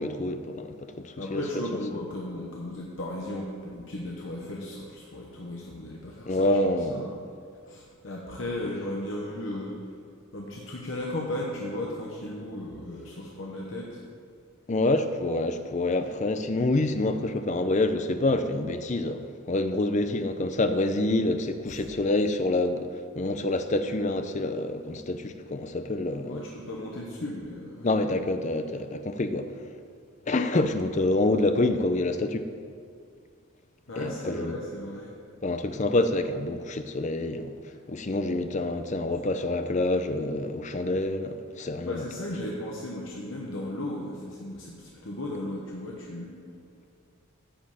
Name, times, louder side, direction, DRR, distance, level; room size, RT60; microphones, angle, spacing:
voice 1, 0.0-1.6 6.3-7.2 14.7-22.9 23.2-26.5 27.8-29.6 30.3-32.5 34.0-34.6 35.4-37.5 37.9-42.1, left 2 dB, 35° left, 0.5 m, -27 dB
voice 2, 1.2-6.6 6.9-7.2 7.7-10.0 10.3-14.0 21.7-21.8 26.3-27.9 33.9-35.1 41.8-46.3, left 1 dB, 60° left, 1.0 m, -35 dB
10.0 x 5.2 x 7.3 m
head